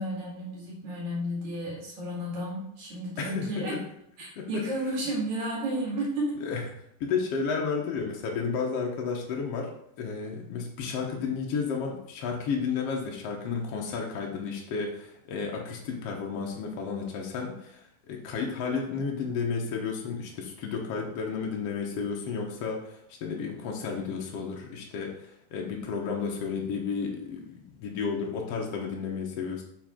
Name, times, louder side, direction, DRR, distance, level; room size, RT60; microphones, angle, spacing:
voice 1, 0.0-3.8 4.2-6.5, right 1 dB, 55° right, -5 dB, 3.3 m, -32 dB
voice 2, 3.2-3.8 4.3-4.6 6.4-6.6 7.0-9.7 10.0-29.6, left 5 dB, 80° left, 0 dB, 1.3 m, -32 dB
7.7 x 5.1 x 3.7 m, 0.74 s
omnidirectional pair, 4.4 m